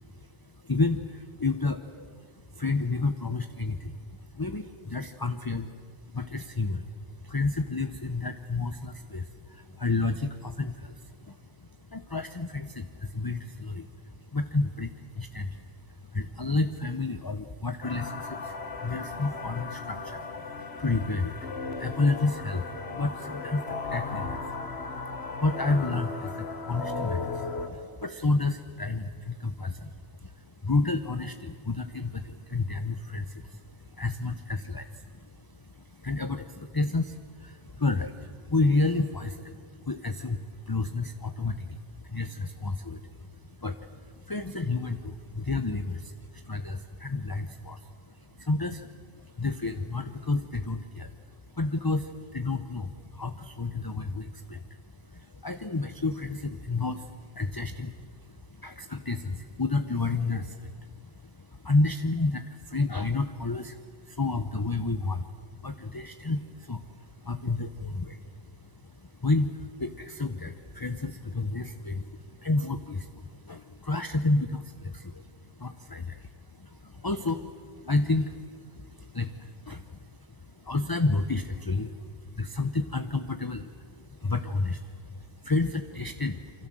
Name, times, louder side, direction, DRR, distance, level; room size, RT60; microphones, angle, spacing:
voice 1, 0.1-3.9 4.3-5.8 6.0-51.2 51.5-81.9 82.4-86.7, left 3 dB, 25° left, 9 dB, 0.8 m, -31 dB
sound 1, 17.8-27.7, left 4 dB, 85° left, 1.9 m, -36 dB
28.0 x 25.0 x 7.7 m, 2.1 s
omnidirectional pair, 1.1 m